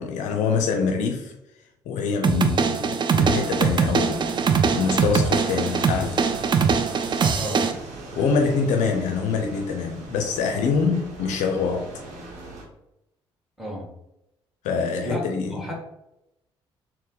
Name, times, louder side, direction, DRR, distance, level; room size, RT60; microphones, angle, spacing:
voice 1, 0.0-1.3 1.9-6.3 8.1-11.9 14.6-15.7, left 5 dB, 60° left, 0.4 m, -25 dB
sound 1, 2.2-7.7, right 6 dB, 35° right, 0.4 m, -22 dB
sound 2, 3.2-12.6, right 2 dB, 65° right, 1.0 m, -39 dB
voice 2, 15.0-15.7, left 1 dB, ahead, 1.4 m, -31 dB
4.1 x 2.1 x 3.8 m
hypercardioid pair, 45°, 14 cm